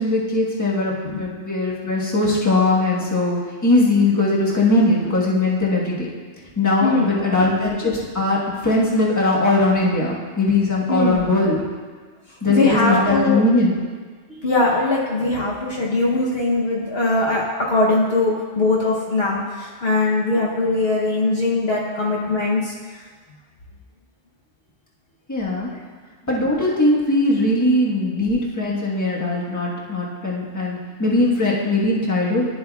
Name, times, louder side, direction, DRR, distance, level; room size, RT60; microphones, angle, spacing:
voice 1, 0.0-6.1 6.6-11.6 12.4-13.7 25.3-25.7 26.3-32.5, left 2 dB, 15° left, -5 dB, 1.3 m, -20 dB
voice 2, 6.8-7.2 10.9-11.2 12.5-13.4 14.4-22.7, left 2 dB, 55° left, -5 dB, 1.1 m, -21 dB
11.5 x 7.5 x 2.3 m, 1.5 s
omnidirectional pair, 1.3 m